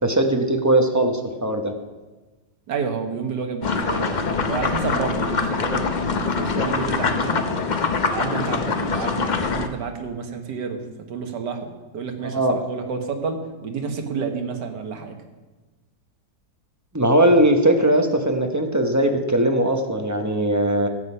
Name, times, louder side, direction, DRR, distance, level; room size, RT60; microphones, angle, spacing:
voice 1, 0.0-1.7 12.2-12.6 16.9-20.9, right 1 dB, 15° right, 4 dB, 0.8 m, -19 dB
voice 2, 2.7-7.5 8.1-15.2, right 5 dB, 85° right, 5 dB, 1.9 m, -30 dB
sound 1, 3.6-9.7, left 4 dB, 50° left, 0.5 m, -24 dB
13.0 x 8.1 x 5.6 m, 1.2 s
omnidirectional pair, 1.8 m